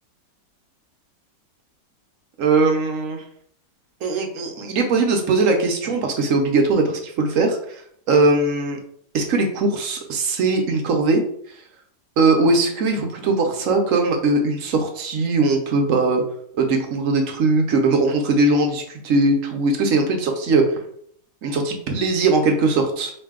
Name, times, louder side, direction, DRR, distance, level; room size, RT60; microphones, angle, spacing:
voice 1, 2.4-3.2 4.0-7.8 8.1-8.8 9.1-11.2 11.5-11.6 12.2-16.2 16.6-20.8 21.4-23.1, right 3 dB, 60° right, 4 dB, 0.8 m, -20 dB
4.8 x 2.6 x 3.6 m, 0.65 s
omnidirectional pair, 1.9 m